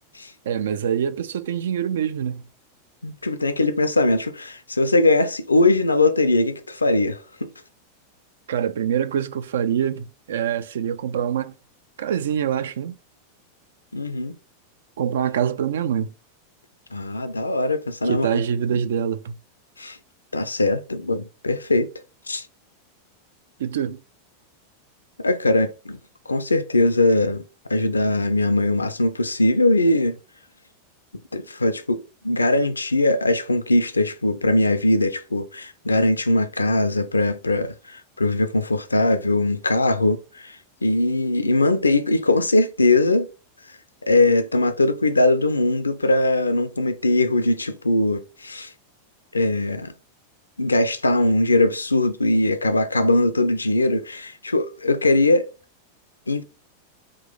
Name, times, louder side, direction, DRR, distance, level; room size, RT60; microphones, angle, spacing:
voice 1, 0.5-2.4 8.5-11.5 12.0-13.0 15.0-16.1 18.0-19.4 23.6-24.0, right 8 dB, 60° right, 0.3 m, -25 dB
voice 2, 3.0-7.5 13.9-14.4 16.9-18.3 18.7-18.8 19.8-20.0 20.3-21.9 22.3-22.4 25.2-26.0 26.3-27.4 27.7-30.2 31.3-40.6 40.8-43.3 44.1-48.7 49.3-49.9 50.6-55.5 56.3-56.4, left 2 dB, 80° left, 0.4 m, -21 dB
3.7 x 2.5 x 3.7 m
figure-of-eight pair, 90°, 0 cm